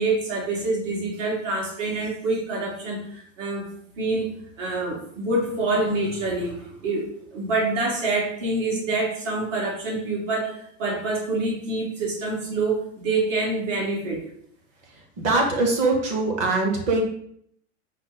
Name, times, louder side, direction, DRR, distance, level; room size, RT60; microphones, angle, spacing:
voice 1, 0.0-3.7 4.0-4.3 4.6-14.2, right 2 dB, 80° right, -2 dB, 1.8 m, -26 dB
voice 2, 15.2-17.0, right 3 dB, 20° right, 2 dB, 0.5 m, -22 dB
5.0 x 2.2 x 4.0 m, 0.66 s
supercardioid pair, 175°, 36 cm